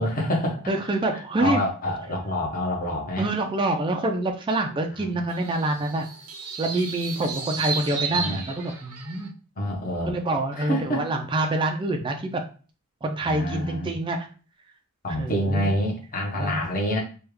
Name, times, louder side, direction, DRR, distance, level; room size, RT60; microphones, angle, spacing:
voice 1, 0.0-0.6 1.1-3.3 5.1-5.2 8.1-8.4 9.6-10.2 10.5-11.0 13.2-13.9 15.0-17.0, left 1 dB, 40° left, -1 dB, 1.0 m, -27 dB
voice 2, 0.7-1.6 3.2-6.1 6.6-9.3 10.0-12.4 13.0-14.3 15.2-15.7 16.4-16.6, right 2 dB, 20° right, 3 dB, 0.3 m, -26 dB
sound 1, 5.3-9.3, right 5 dB, 85° right, 0.6 m, -33 dB
3.3 x 2.3 x 3.1 m, 0.38 s
head